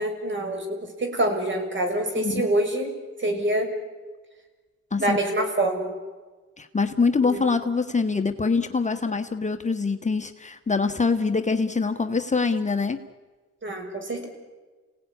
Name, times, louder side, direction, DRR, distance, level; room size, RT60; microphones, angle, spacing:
voice 1, 0.0-2.9 3.2-3.7 5.0-5.9 7.2-7.4 13.6-14.3, right 1 dB, 40° right, 5 dB, 6.4 m, -26 dB
voice 2, 2.2-2.5 4.9-5.2 6.6-13.0, left 4 dB, 25° left, 7 dB, 1.3 m, -24 dB
30.0 x 17.5 x 9.8 m, 1.3 s
cardioid pair, 90°, 30 cm